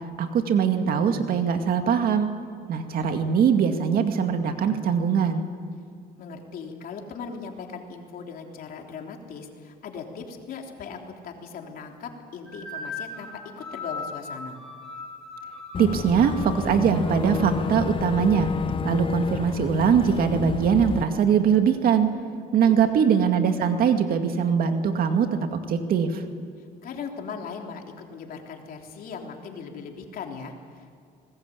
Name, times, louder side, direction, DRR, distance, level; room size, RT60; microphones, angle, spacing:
voice 1, 0.2-2.3 2.7-5.4 15.8-18.5 18.8-22.1 22.5-26.2, right 7 dB, 60° right, 6 dB, 2.2 m, -22 dB
voice 2, 6.2-13.3 13.6-14.6 22.6-22.7 26.8-30.9, left 5 dB, 60° left, 2 dB, 3.5 m, -38 dB
sound 1, 12.5-17.5, left 3 dB, 5° left, 7.4 m, -39 dB
Boat Water vehicle / Engine, 15.7-21.0, left 5 dB, 30° left, 0.8 m, -29 dB
25.0 x 20.0 x 8.6 m, 2.3 s
cardioid pair, 110°, 17 cm